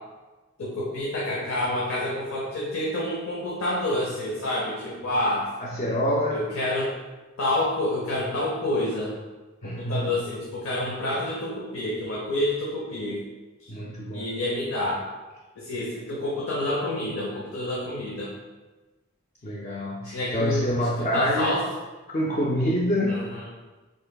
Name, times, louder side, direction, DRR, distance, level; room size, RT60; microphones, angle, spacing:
voice 1, 0.6-5.5 6.3-6.9 7.4-9.2 9.6-13.2 13.6-13.7 14.1-15.0 15.6-18.3 20.0-21.6 23.1-23.4, left 1 dB, 80° left, -5 dB, 0.8 m, -28 dB
voice 2, 5.6-6.4 9.6-10.2 13.7-14.3 19.4-21.5 22.1-23.3, equal, 30° left, -3 dB, 0.4 m, -26 dB
5.5 x 3.8 x 2.2 m, 1.2 s
head